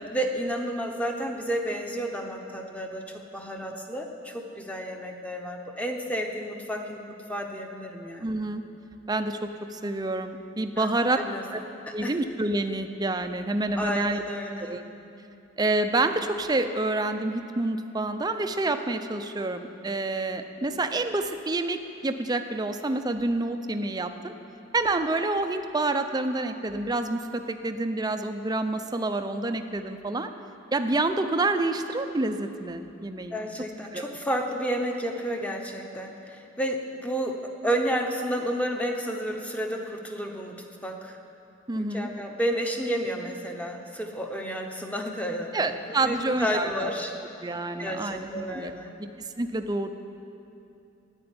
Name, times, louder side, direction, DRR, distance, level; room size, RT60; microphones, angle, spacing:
voice 1, 0.1-7.0 7.3-8.3 10.8-10.9 11.1-11.4 12.0-12.1 13.7-14.8 33.3-40.5 40.8-41.2 41.8-45.7 46.0-47.2 47.8-48.9, equal, 5° left, 3 dB, 1.0 m, -31 dB
voice 2, 8.2-8.6 9.1-11.2 11.5-11.6 11.9-14.2 14.6-14.8 15.6-24.3 24.7-30.3 30.7-33.4 33.9-34.1 41.7-42.1 45.5-46.9 47.4-48.7 49.0-49.9, right 2 dB, 20° right, 7 dB, 0.6 m, -28 dB
11.0 x 9.0 x 9.6 m, 2.8 s
head